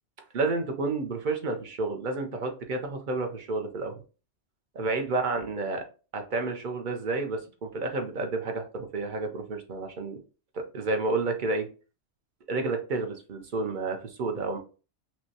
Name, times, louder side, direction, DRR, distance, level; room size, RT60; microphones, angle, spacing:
voice 1, 0.3-4.0 4.7-5.8 6.1-10.2 10.5-11.7 12.5-14.6, right 3 dB, 45° right, 4 dB, 0.8 m, -30 dB
5.8 x 2.3 x 2.7 m, 0.34 s
omnidirectional pair, 1.2 m